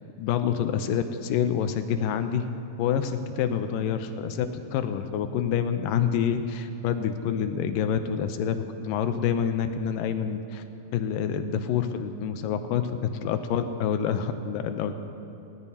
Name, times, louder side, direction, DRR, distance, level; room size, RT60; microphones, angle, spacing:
voice 1, 0.2-2.5 2.8-10.6 10.9-14.9, left 8 dB, 80° left, 8 dB, 2.2 m, -27 dB
19.5 x 17.5 x 2.8 m, 2.7 s
omnidirectional pair, 4.1 m